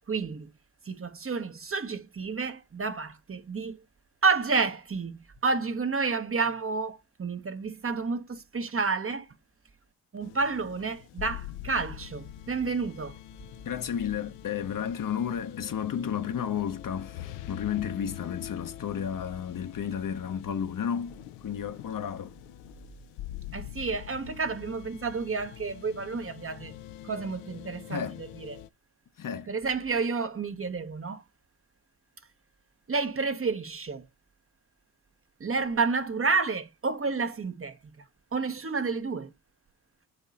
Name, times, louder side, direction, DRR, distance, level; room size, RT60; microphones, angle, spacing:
voice 1, 0.1-0.5 0.8-3.8 4.2-9.3 10.1-13.2 23.5-26.8 27.0-28.6 29.5-31.2 32.9-34.1 35.4-38.0 38.3-39.3, right 4 dB, 30° right, 1.0 m, -30 dB
sound 1, 10.2-28.7, left 12 dB, 70° left, 0.7 m, -44 dB
voice 2, 13.6-22.3 27.9-28.2 29.2-29.5, left 8 dB, 45° left, 0.9 m, -32 dB
7.9 x 3.0 x 4.0 m
hypercardioid pair, 45°, 46 cm